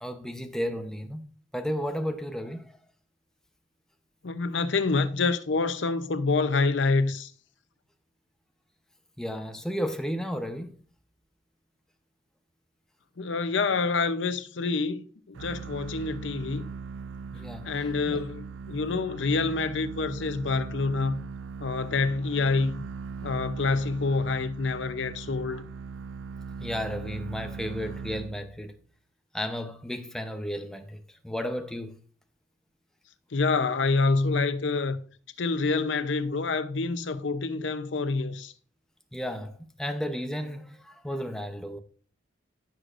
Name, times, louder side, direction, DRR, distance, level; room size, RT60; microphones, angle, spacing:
voice 1, 0.0-1.2 1.5-2.7 9.2-10.7 17.3-17.7 18.1-18.2 26.6-28.7 29.3-31.9 39.1-41.8, equal, 5° left, 0.8 m, -33 dB
voice 2, 4.2-7.3 13.2-16.6 17.6-21.2 21.6-22.8 23.2-25.7 33.3-35.0 35.4-38.5, left 3 dB, 80° left, 0.7 m, -27 dB
sound 1, 15.3-28.8, right 5 dB, 80° right, 0.4 m, -40 dB
15.0 x 6.4 x 2.5 m
head